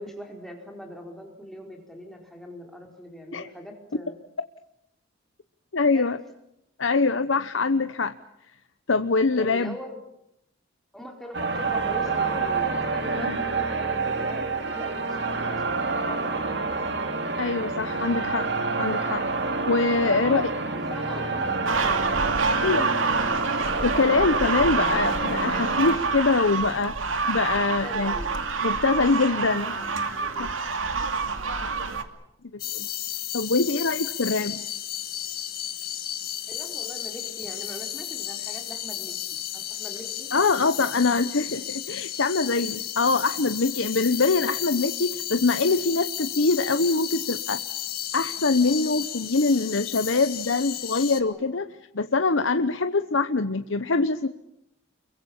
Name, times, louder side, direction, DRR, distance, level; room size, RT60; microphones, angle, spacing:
voice 1, 0.0-4.2 5.9-6.1 9.4-10.0 10.9-16.9 20.0-22.0 27.6-28.3 29.0-30.6 36.5-40.3 51.2-51.5, equal, ahead, 2 dB, 4.6 m, -42 dB
voice 2, 5.7-6.2 6.8-8.1 8.9-9.7 13.2-13.4 17.4-18.5 18.8-19.2 19.7-20.5 22.6-23.0 23.8-27.0 27.3-28.1 28.6-29.7 30.4-30.5 31.8-31.9 32.7-32.9 33.3-34.6 40.3-47.6 48.1-51.7 51.9-54.3, left 3 dB, 75° left, 10 dB, 1.0 m, -24 dB
sound 1, 11.3-26.0, right 3 dB, 60° right, 2.5 m, -28 dB
sound 2, 21.7-32.0, right 4 dB, 85° right, 2.5 m, -27 dB
sound 3, 32.6-51.2, left 11 dB, 50° left, 1.9 m, -33 dB
29.0 x 23.0 x 7.2 m, 0.82 s
head